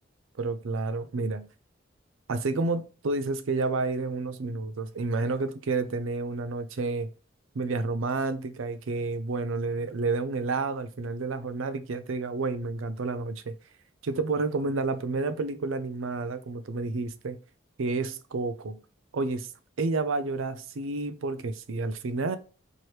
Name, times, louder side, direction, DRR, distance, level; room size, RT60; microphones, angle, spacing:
voice 1, 0.4-1.5 2.3-7.1 7.5-13.5 14.0-17.4 17.8-18.8 19.1-19.5 19.8-22.4, right 3 dB, 90° right, 0.5 m, -30 dB
4.6 x 3.0 x 3.1 m
head